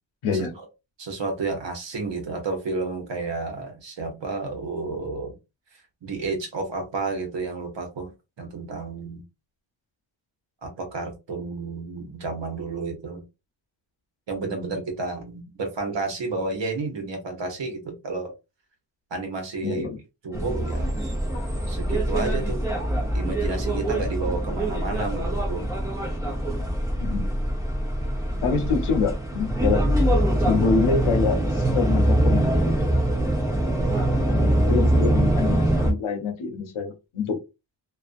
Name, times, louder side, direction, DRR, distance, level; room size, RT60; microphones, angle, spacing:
voice 1, 0.2-0.6 19.6-20.0 21.3-21.5 27.0-27.3 28.4-29.8 30.4-32.8 34.2-37.4, left 5 dB, 85° left, 5 dB, 0.8 m, -26 dB
voice 2, 1.0-5.4 6.0-8.1 8.4-9.2 10.6-13.2 14.3-18.3 19.1-19.9 20.2-21.0 21.7-22.7 23.1-25.7, right 3 dB, 60° right, 3 dB, 1.0 m, -31 dB
sound 1, 20.3-35.9, right 1 dB, 5° right, 0.9 m, -23 dB
2.4 x 2.4 x 2.5 m, 0.26 s
wide cardioid pair, 130°, 48 cm